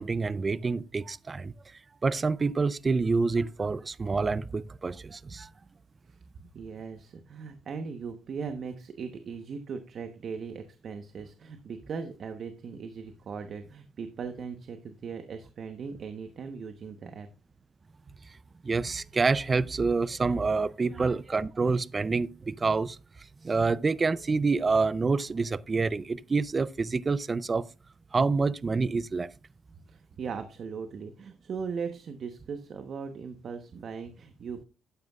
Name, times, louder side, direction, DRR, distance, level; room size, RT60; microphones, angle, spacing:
voice 1, 0.0-1.5 2.0-5.5 18.6-23.0 23.4-27.7 28.1-29.3, right 4 dB, 30° right, 0.5 m, -27 dB
voice 2, 6.5-17.3 29.9-34.7, right 5 dB, 55° right, 1.0 m, -39 dB
12.5 x 9.3 x 2.4 m
cardioid pair, 90°, 0 cm